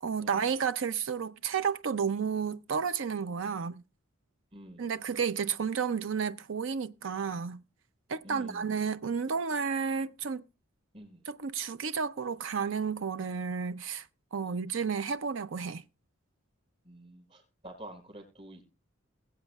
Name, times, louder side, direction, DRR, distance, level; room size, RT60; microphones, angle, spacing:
voice 1, 0.0-3.8 4.8-7.6 8.1-10.4 11.3-14.1 14.3-15.8, right 6 dB, 65° right, 0.5 m, -32 dB
voice 2, 4.5-4.9 8.2-8.7 10.9-11.2 14.4-14.5 16.8-18.6, right 1 dB, 30° right, 5.0 m, -48 dB
21.0 x 8.2 x 2.3 m
head